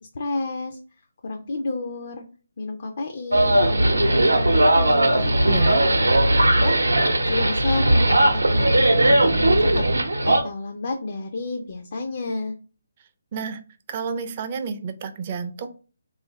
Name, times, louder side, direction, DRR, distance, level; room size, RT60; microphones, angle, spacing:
voice 1, 0.0-0.8 1.2-2.3 2.6-6.2 6.5-9.9 10.2-12.5, left 3 dB, 50° left, 3 dB, 0.4 m, -31 dB
sound 1, 3.3-10.4, right 1 dB, 80° right, 0.6 m, -18 dB
voice 2, 5.5-5.8 13.3-13.6 13.9-15.7, right 6 dB, 35° right, 8 dB, 0.4 m, -30 dB
3.3 x 2.5 x 3.0 m, 0.37 s
figure-of-eight pair, 145°, 0 cm